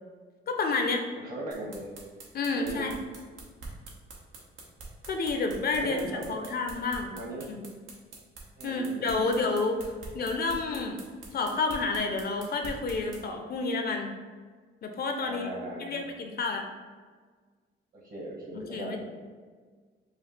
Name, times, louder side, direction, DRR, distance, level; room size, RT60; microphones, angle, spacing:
voice 1, 0.5-1.1 2.3-3.0 5.1-6.0 6.3-7.1 7.5-7.6 8.6-11.0 11.3-14.1 14.8-15.5 15.8-16.7 18.5-19.0, left 3 dB, 50° left, 4 dB, 0.5 m, -30 dB
voice 2, 1.1-1.9 2.5-2.9 5.6-6.5 7.1-7.5 8.6-9.3 15.2-16.0 17.9-19.0, right 1 dB, 45° right, -3 dB, 1.3 m, -38 dB
sound 1, 1.5-13.2, right 3 dB, 85° right, 0.9 m, -44 dB
4.9 x 2.4 x 3.2 m, 1.5 s
cardioid pair, 90°, 20 cm